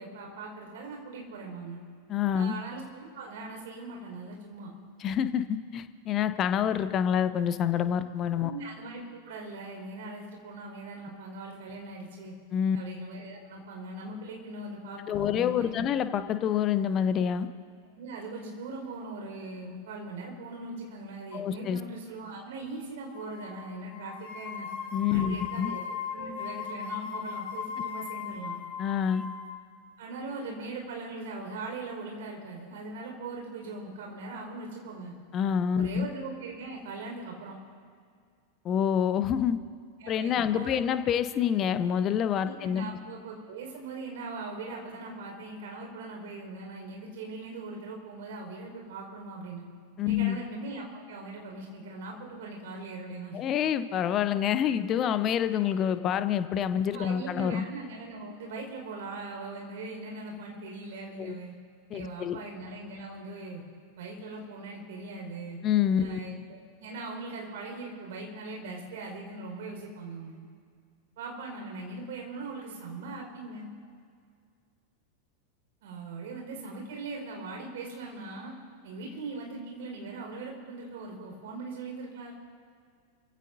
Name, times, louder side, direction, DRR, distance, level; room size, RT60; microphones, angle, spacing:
voice 1, 0.0-1.8 2.3-4.7 8.4-12.3 12.7-15.9 17.9-24.7 25.1-28.6 30.0-35.1 35.8-37.6 40.0-40.8 42.4-49.6 50.0-53.4 56.9-61.5 61.9-63.6 64.0-65.6 66.0-70.4 71.2-73.7 75.8-78.5 78.8-82.3, right 3 dB, 55° right, 0 dB, 4.8 m, -40 dB
voice 2, 2.1-2.5 5.0-8.5 12.5-12.8 15.1-17.5 21.3-21.8 24.9-25.7 28.8-29.2 35.3-36.1 38.6-39.6 40.1-42.9 50.0-50.4 53.3-57.6 61.2-61.3 61.9-62.4 65.6-66.2, left 9 dB, 30° left, 11 dB, 0.8 m, -27 dB
sound 1, 23.1-23.6 23.9-29.5, left 7 dB, 45° left, 3.3 m, -38 dB
28.0 x 16.0 x 2.7 m, 2.2 s
figure-of-eight pair, 90°, 0 cm